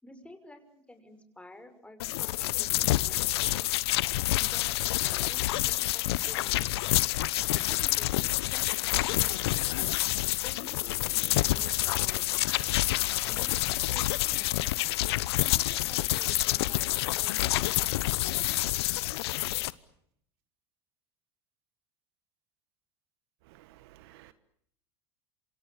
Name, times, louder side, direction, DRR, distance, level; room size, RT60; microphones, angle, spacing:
voice 1, 0.0-3.7 4.4-6.8 7.5-9.6 10.4-12.7 13.3-14.6 15.4-17.9, left 1 dB, 10° left, 8 dB, 6.1 m, -51 dB
sound 1, 2.0-19.7, left 17 dB, 70° left, 1.0 m, -28 dB
voice 2, 23.5-24.3, right 15 dB, 65° right, 14 dB, 1.4 m, -55 dB
27.5 x 27.0 x 7.0 m, 0.70 s
hypercardioid pair, 80°, 14 cm